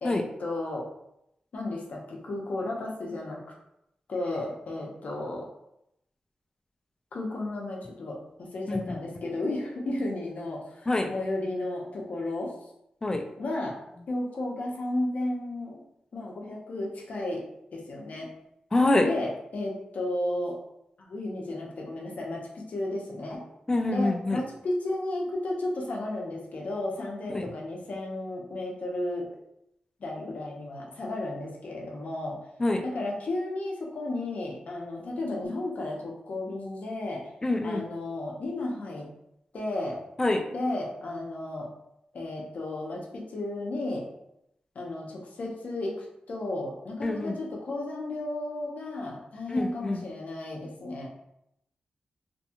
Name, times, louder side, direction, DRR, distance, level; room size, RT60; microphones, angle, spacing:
voice 1, 0.0-0.8 1.5-3.4 4.1-5.5 7.1-12.5 13.4-13.8 14.1-15.8 16.1-17.4 17.7-18.3 19.0-20.6 21.0-23.4 23.9-29.2 30.0-32.4 32.8-37.2 37.6-39.1 39.5-40.0 40.5-41.7 42.1-44.1 44.7-51.1, left 2 dB, 70° left, -2 dB, 0.7 m, -33 dB
voice 2, 18.7-19.1 23.7-24.4 27.3-27.5 32.6-32.8 37.4-37.9 40.2-40.4 47.0-47.4 49.5-50.0, left 2 dB, 25° left, 5 dB, 0.4 m, -25 dB
2.6 x 2.3 x 2.8 m, 0.81 s
wide cardioid pair, 85°, 3 cm